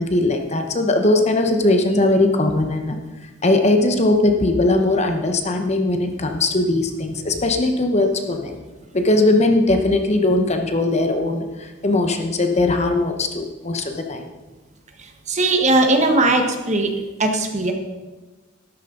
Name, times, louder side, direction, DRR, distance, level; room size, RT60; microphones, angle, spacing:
voice 1, 0.0-3.0 3.2-8.5 8.9-14.2, left 2 dB, 35° left, 5 dB, 1.1 m, -19 dB
voice 2, 15.3-16.9 17.2-17.7, right 2 dB, 35° right, 4 dB, 1.4 m, -18 dB
13.0 x 12.5 x 4.0 m, 1.2 s
head